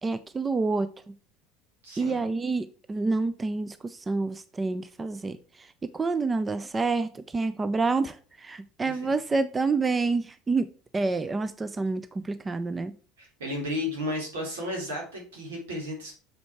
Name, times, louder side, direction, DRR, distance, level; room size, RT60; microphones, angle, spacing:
voice 1, 0.0-0.9 2.0-10.7 10.9-12.9, right 3 dB, 20° right, 0.5 m, -28 dB
voice 2, 1.8-2.3 8.8-9.1 13.2-16.1, left 1 dB, 85° right, 3.3 m, -33 dB
6.5 x 5.1 x 4.7 m
hypercardioid pair, 80°, 0 cm